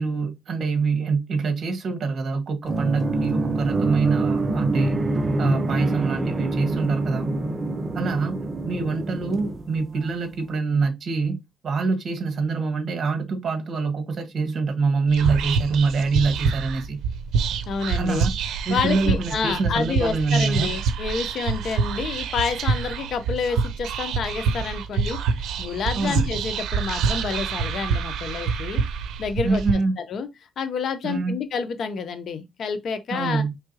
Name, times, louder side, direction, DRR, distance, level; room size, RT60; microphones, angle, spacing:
voice 1, 0.0-5.0 5.4-7.3 7.9-11.4 11.6-17.0 18.0-18.3 18.6-20.7 25.9-26.3 29.4-30.0 31.0-31.3 33.1-33.5, right 4 dB, 55° right, 1.5 m, -25 dB
sound 1, 2.6-10.2, right 2 dB, 30° right, 0.7 m, -25 dB
Whispering, 15.1-29.7, right 5 dB, 80° right, 0.6 m, -26 dB
voice 2, 17.7-18.3 18.7-25.2 25.6-28.8 29.2-30.3 30.6-33.4, left 5 dB, 60° left, 0.8 m, -28 dB
4.7 x 3.4 x 2.9 m
cardioid pair, 90°, 0 cm